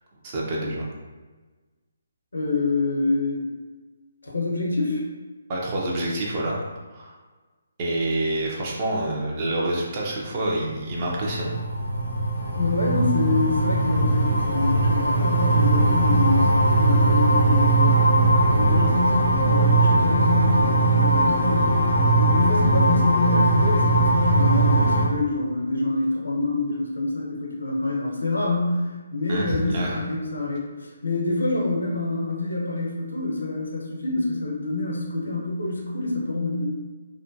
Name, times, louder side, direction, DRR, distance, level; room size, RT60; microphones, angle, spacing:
voice 1, 0.2-0.9 5.5-6.6 6.9-7.2 7.8-11.6 29.3-30.0, right 1 dB, 35° right, -3 dB, 0.6 m, -27 dB
voice 2, 2.3-3.5 4.2-5.0 12.5-18.0 18.5-36.7, left 2 dB, 75° left, -2 dB, 0.6 m, -26 dB
sound 1, 10.7-25.0, right 2 dB, 90° right, 1.4 m, -20 dB
2.5 x 2.1 x 2.5 m, 1.3 s
figure-of-eight pair, 140°, 0 cm